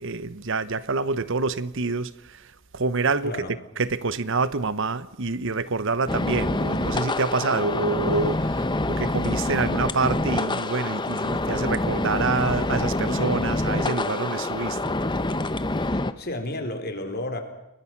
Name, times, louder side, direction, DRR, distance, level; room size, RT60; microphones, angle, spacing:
voice 1, 0.0-2.4 2.7-3.4 3.8-14.9, right 4 dB, 60° right, 1.0 m, -27 dB
voice 2, 3.2-3.6 15.8-17.4, left 1 dB, 45° left, 4.2 m, -32 dB
sound 1, 6.1-16.1, left 2 dB, 20° left, 1.0 m, -26 dB
30.0 x 21.5 x 6.0 m
head